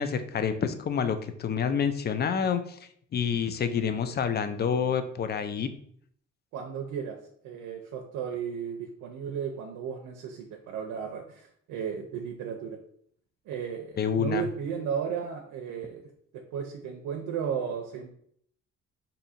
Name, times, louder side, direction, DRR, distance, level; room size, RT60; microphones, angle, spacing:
voice 1, 0.0-2.8 3.1-5.7 14.0-14.5, left 7 dB, 35° left, 10 dB, 0.4 m, -28 dB
voice 2, 6.5-7.2 7.4-12.8 13.5-16.0 16.3-18.1, right 7 dB, 85° right, 2 dB, 0.5 m, -34 dB
2.7 x 2.6 x 4.1 m, 0.64 s
cardioid pair, 90°, 30 cm